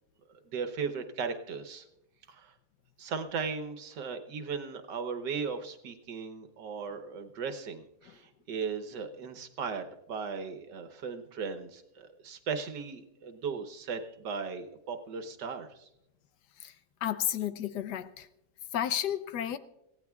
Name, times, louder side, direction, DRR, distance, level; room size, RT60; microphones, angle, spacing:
voice 1, 0.5-1.8 2.3-2.5 3.0-15.9, right 5 dB, 85° right, 1.7 m, -37 dB
voice 2, 17.0-18.3 18.7-19.6, left 10 dB, 80° left, 1.3 m, -32 dB
24.0 x 16.5 x 2.4 m
omnidirectional pair, 1.8 m